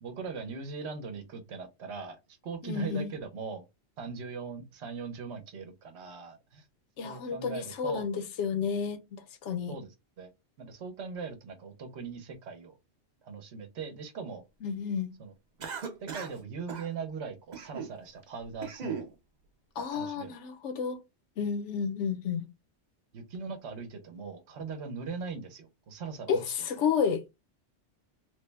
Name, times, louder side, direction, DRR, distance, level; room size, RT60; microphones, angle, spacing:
voice 1, 0.0-3.6 4.0-6.7 7.0-8.1 9.7-9.9 10.2-10.3 10.6-12.8 13.2-14.4 15.2-15.3 16.0-19.2 19.8-20.3 23.1-26.7, right 5 dB, 70° right, 1.0 m, -40 dB
voice 2, 2.6-3.1 7.0-9.7 14.6-15.1 19.8-21.0 21.4-22.5 26.3-27.2, left 6 dB, 75° left, 0.9 m, -31 dB
Cough, 15.6-16.4 16.7-16.9 17.5-17.9 18.4-19.1, right 6 dB, 50° right, 0.6 m, -38 dB
3.2 x 2.1 x 3.2 m
omnidirectional pair, 1.2 m